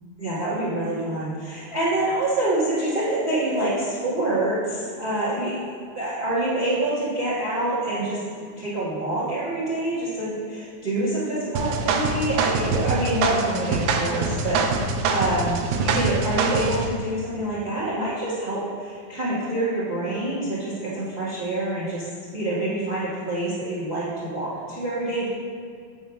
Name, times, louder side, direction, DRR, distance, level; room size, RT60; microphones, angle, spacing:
voice 1, 0.2-5.7 5.9-22.0 22.3-25.3, right 1 dB, 30° right, -10 dB, 1.2 m, -26 dB
sound 1, 11.6-16.9, right 4 dB, 85° right, 2.3 m, -24 dB
9.6 x 3.4 x 6.2 m, 2.2 s
omnidirectional pair, 4.1 m